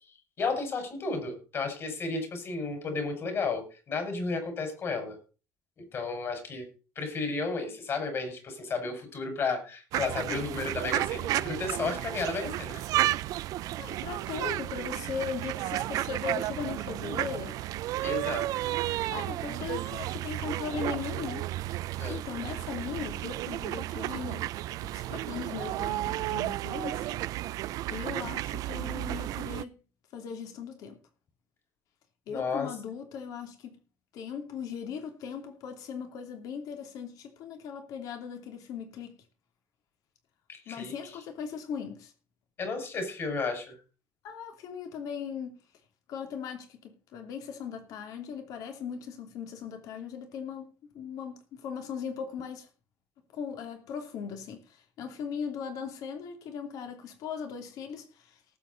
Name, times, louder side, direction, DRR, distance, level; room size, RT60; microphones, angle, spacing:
voice 1, 0.4-5.2 5.9-6.7 7.0-13.1 18.0-18.7 22.0-22.2 32.3-32.7 40.5-40.9 42.6-43.7, left 4 dB, 40° left, 5.5 m, -33 dB
sound 1, 9.9-29.6, right 15 dB, 70° right, 0.5 m, -33 dB
voice 2, 13.8-17.6 19.1-21.5 22.1-24.5 24.8-27.2 27.9-29.8 30.1-31.0 32.3-33.8 34.1-39.2 40.7-42.1 44.2-45.6 46.1-50.7 50.9-52.7 53.3-58.4, left 6 dB, 70° left, 2.9 m, -38 dB
18.5 x 8.1 x 4.0 m
cardioid pair, 135°, 6 cm